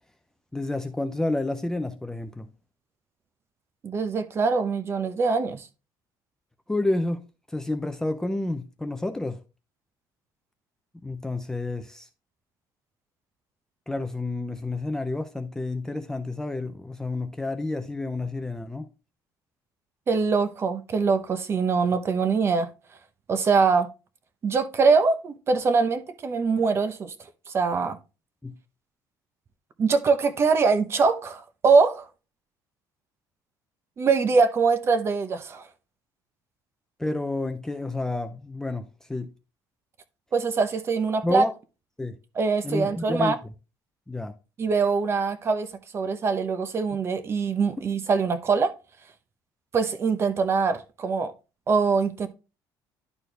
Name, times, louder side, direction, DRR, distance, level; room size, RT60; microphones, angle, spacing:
voice 1, 0.5-2.5 6.7-9.4 11.0-12.1 13.9-18.9 28.4-28.5 37.0-39.3 41.2-41.5 42.0-42.2 42.6-43.3 44.1-44.3, left 2 dB, 5° left, 0.5 m, -30 dB
voice 2, 3.8-5.7 20.1-22.7 23.3-23.9 24.4-27.1 27.5-28.0 29.8-32.1 34.0-35.7 40.3-41.4 42.4-43.4 44.6-48.7 49.7-51.3 51.7-52.3, right 4 dB, 30° right, 0.9 m, -23 dB
11.0 x 4.4 x 3.3 m
cardioid pair, 140°, 8 cm